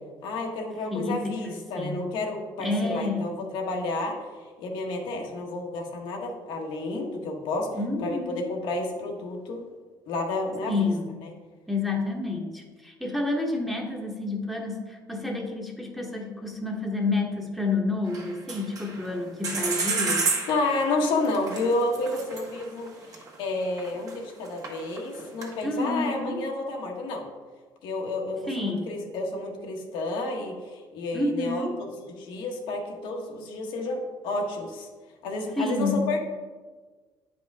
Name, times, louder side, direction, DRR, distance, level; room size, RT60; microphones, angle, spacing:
voice 1, 0.2-4.2 4.6-7.7 8.0-9.6 10.1-10.9 20.5-27.2 27.8-34.9 35.2-36.2, left 2 dB, 80° left, 1 dB, 1.3 m, -30 dB
voice 2, 0.9-2.1 2.6-3.3 7.7-8.4 10.7-11.1 11.7-20.3 25.6-26.5 28.5-28.9 31.1-31.7 35.6-36.1, left 2 dB, ahead, 0 dB, 1.1 m, -29 dB
sound 1, 18.1-19.2 19.4-24.1 24.4-25.6, right 4 dB, 45° right, 1.6 m, -30 dB
9.1 x 5.0 x 3.5 m, 1.4 s
cardioid pair, 120°, 8 cm